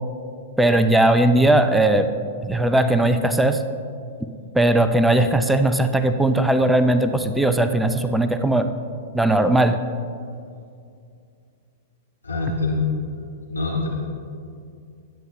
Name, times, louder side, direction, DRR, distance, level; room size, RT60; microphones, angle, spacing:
voice 1, 0.6-2.1 2.4-3.6 4.5-8.7 9.1-9.8, right 1 dB, 5° right, 8 dB, 0.7 m, -18 dB
voice 2, 12.2-12.8 13.5-13.9, left 3 dB, 85° left, -5 dB, 2.8 m, -24 dB
21.0 x 9.6 x 3.2 m, 2.4 s
figure-of-eight pair, 105°, 0 cm